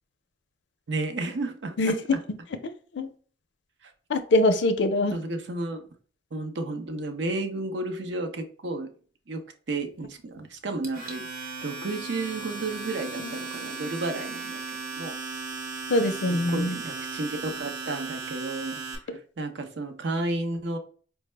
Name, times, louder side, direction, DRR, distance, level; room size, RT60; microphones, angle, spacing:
voice 1, 0.9-2.2 3.8-3.9 5.1-5.9 6.3-8.9 9.3-9.4 9.7-14.6 15.0-15.1 16.3-20.8, right 2 dB, 75° right, 0.6 m, -32 dB
voice 2, 2.6-3.1 4.1-5.2 13.2-13.3 15.9-16.8, left 1 dB, 75° left, 0.5 m, -23 dB
Domestic sounds home sounds, 10.8-19.0, right 4 dB, 50° right, 0.9 m, -36 dB
4.4 x 2.0 x 3.2 m
head